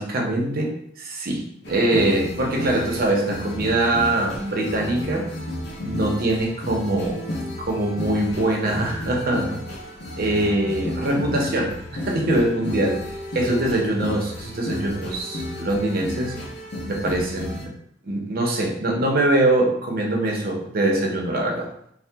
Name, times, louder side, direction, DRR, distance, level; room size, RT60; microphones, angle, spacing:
voice 1, 0.0-5.3 5.8-7.2 7.6-9.6 10.2-13.1 13.3-16.4 16.9-17.7 18.0-21.7, right 1 dB, 50° right, 0 dB, 0.6 m, -23 dB
sound 1, 1.6-17.7, left 1 dB, 60° left, 0.6 m, -32 dB
2.8 x 2.1 x 3.3 m, 0.68 s
head